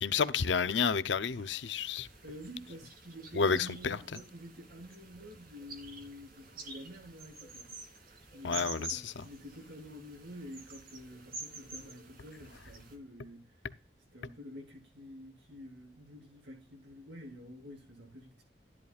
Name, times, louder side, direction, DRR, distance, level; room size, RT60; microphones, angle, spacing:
voice 1, 0.0-2.1 3.3-4.0 8.4-9.2, left 5 dB, 90° left, 0.7 m, -30 dB
sound 1, 1.2-13.0, right 3 dB, 55° right, 2.9 m, -49 dB
voice 2, 2.2-7.7 8.3-13.6 14.1-18.4, equal, 90° right, 7.3 m, -49 dB
12.5 x 11.0 x 2.5 m
head